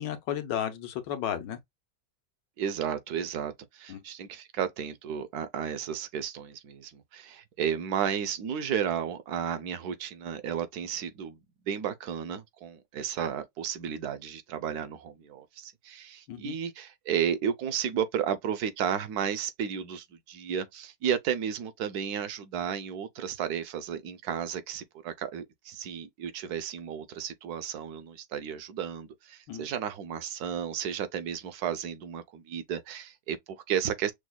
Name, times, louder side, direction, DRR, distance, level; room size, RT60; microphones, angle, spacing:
voice 1, 0.0-1.6 3.9-4.0 16.3-16.6 29.5-29.7, left 10 dB, 90° left, 1.4 m, -33 dB
voice 2, 2.6-11.4 11.7-34.1, right 8 dB, 70° right, 1.1 m, -33 dB
6.1 x 2.0 x 2.3 m
omnidirectional pair, 1.8 m